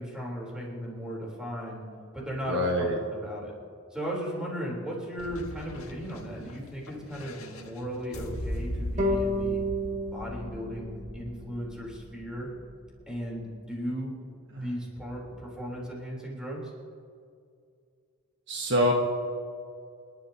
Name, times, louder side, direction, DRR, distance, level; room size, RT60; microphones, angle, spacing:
voice 1, 0.0-1.8 2.1-3.5 3.9-9.6 10.1-12.5 13.1-14.1 14.6-16.7, equal, 5° right, -4 dB, 3.7 m, -36 dB
voice 2, 2.5-3.0 14.5-14.7 18.5-18.9, equal, 55° right, 0 dB, 1.3 m, -26 dB
sound 1, 5.2-13.2, left 1 dB, 75° left, 1.6 m, -39 dB
sound 2, 9.0-12.2, equal, 35° right, 1.9 m, -32 dB
29.0 x 12.0 x 2.9 m, 2.3 s
head